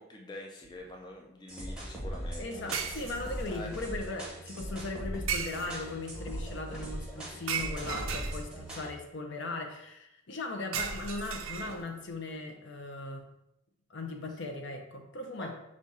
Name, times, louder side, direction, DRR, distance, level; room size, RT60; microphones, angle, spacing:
voice 1, 0.0-2.8 3.5-3.7 15.4-15.6, left 1 dB, 20° left, 0 dB, 0.4 m, -45 dB
sound 1, 0.6-0.9 2.7-3.6 5.3-6.0 7.5-8.8 10.7-12.0, right 7 dB, 80° right, 0.5 m, -36 dB
sound 2, 1.5-8.9, equal, 5° right, 0.8 m, -40 dB
voice 2, 2.4-13.3 13.9-15.6, left 2 dB, 60° left, 4 dB, 0.7 m, -38 dB
5.1 x 2.4 x 4.0 m, 0.85 s
head